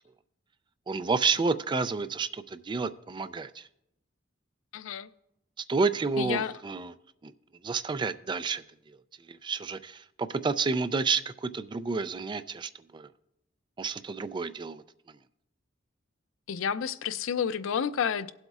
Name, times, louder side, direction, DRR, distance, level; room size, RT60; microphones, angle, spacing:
voice 1, 0.9-3.7 5.6-6.9 7.2-7.3 7.6-8.6 9.3-13.1 13.8-15.2, right 4 dB, 25° right, 13 dB, 0.3 m, -30 dB
voice 2, 4.7-5.1 6.2-6.5 16.5-18.3, left 7 dB, 90° left, 14 dB, 0.4 m, -30 dB
18.0 x 7.8 x 2.4 m, 0.82 s
head